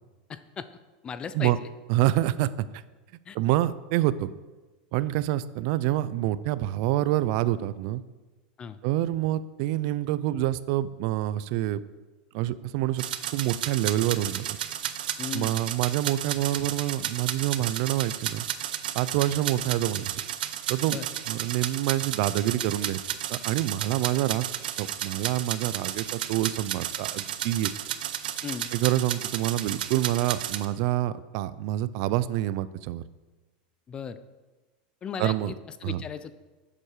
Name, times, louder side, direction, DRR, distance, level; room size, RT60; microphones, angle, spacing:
voice 1, 0.3-0.7 1.0-1.7 3.3-3.4 8.6-8.8 15.2-15.6 20.9-21.1 28.4-28.7 33.9-34.2 35.0-36.3, left 7 dB, 20° left, 13 dB, 0.4 m, -36 dB
voice 2, 1.9-2.7 3.3-4.3 4.9-8.0 8.8-11.8 12.3-13.0 13.3-14.4 15.3-18.4 18.9-20.2 20.7-21.0 21.3-23.0 23.3-24.5 24.8-27.7 28.7-33.0 35.2-35.5 35.8-36.0, right 14 dB, 50° right, 17 dB, 0.4 m, -27 dB
sound 1, 13.0-30.7, right 11 dB, 85° right, 0.8 m, -33 dB
11.0 x 7.5 x 4.9 m, 1.2 s
supercardioid pair, 160°, 5 cm